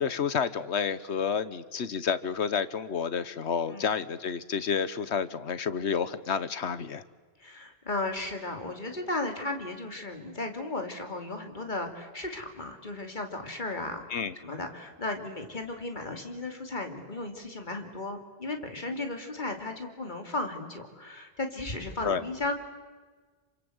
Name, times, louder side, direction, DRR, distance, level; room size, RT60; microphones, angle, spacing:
voice 1, 0.0-7.0 14.1-14.3 22.0-22.2, left 6 dB, 90° left, 15 dB, 1.4 m, -30 dB
voice 2, 7.4-22.5, left 2 dB, 45° left, 5 dB, 3.1 m, -35 dB
28.0 x 25.5 x 8.0 m, 1.4 s
omnidirectional pair, 1.1 m